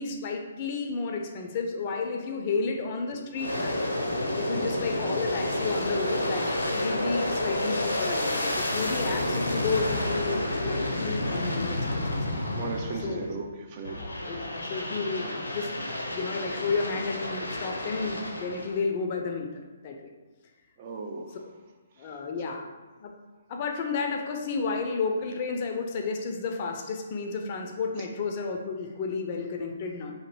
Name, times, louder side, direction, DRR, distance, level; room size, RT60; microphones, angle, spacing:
voice 1, 0.0-3.8 4.3-12.4 13.0-13.3 14.0-15.7 16.1-19.5 19.8-20.1 22.0-22.7 23.0-23.1 23.5-30.1, left 4 dB, 35° left, 2 dB, 0.4 m, -32 dB
Aircraft, 3.3-13.4 13.8-18.8, left 1 dB, 80° left, 0.6 m, -30 dB
voice 2, 12.5-14.0 20.8-21.3 22.5-22.6, right 4 dB, 35° right, 2 dB, 0.4 m, -36 dB
2.9 x 2.6 x 4.4 m, 1.2 s
figure-of-eight pair, 130°, 0 cm